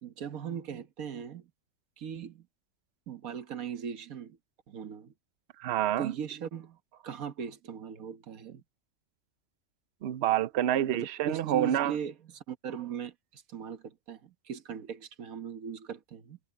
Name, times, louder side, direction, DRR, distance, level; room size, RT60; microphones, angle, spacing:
voice 1, 0.0-1.5 2.0-2.5 3.1-4.4 4.7-5.1 6.0-8.6 10.9-16.4, right 8 dB, 80° right, 1.6 m, -39 dB
voice 2, 5.6-6.1 10.0-12.0, right 11 dB, 55° right, 0.8 m, -27 dB
omnidirectional pair, 1.5 m